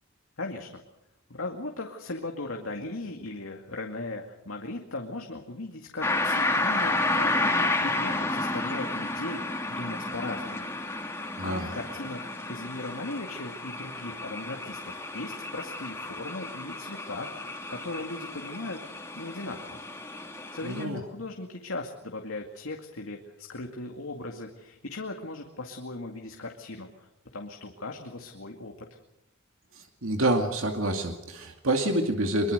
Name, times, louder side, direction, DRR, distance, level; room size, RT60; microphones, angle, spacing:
voice 1, 0.4-0.8 1.3-10.7 11.1-19.8 20.5-28.7, left 2 dB, 85° left, 3 dB, 2.2 m, -38 dB
sound 1, 6.0-20.8, left 2 dB, 15° left, 2.8 m, -31 dB
voice 2, 11.4-11.7 20.6-21.0 29.7-32.5, right 1 dB, 80° right, 4 dB, 2.4 m, -27 dB
24.0 x 23.5 x 6.7 m, 0.84 s
head